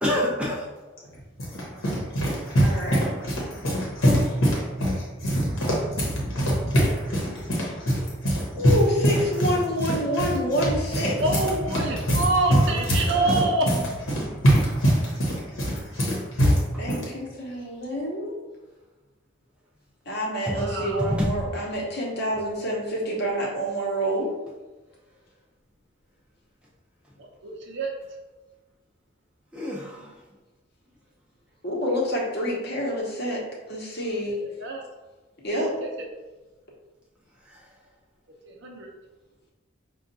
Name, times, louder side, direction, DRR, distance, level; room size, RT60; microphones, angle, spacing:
voice 1, 0.0-0.7 12.6-13.4 15.9-16.1 16.7-16.8 20.5-21.4 29.5-30.1 37.5-37.6, left 1 dB, 5° right, -5 dB, 0.4 m, -29 dB
sound 1, 1.0-17.1, equal, 75° left, 0.9 m, -24 dB
voice 2, 2.6-3.8 4.1-4.4 8.6-11.2 16.8-18.3 20.1-24.3 30.0-30.1 31.6-34.4 35.4-35.7, equal, 50° left, -3 dB, 0.9 m, -28 dB
voice 3, 11.2-13.7 20.5-21.1 27.2-28.0 34.6-34.8 35.8-35.9 38.5-38.9, right 2 dB, 55° right, 0 dB, 0.6 m, -27 dB
5.4 x 2.3 x 2.6 m, 1.2 s
head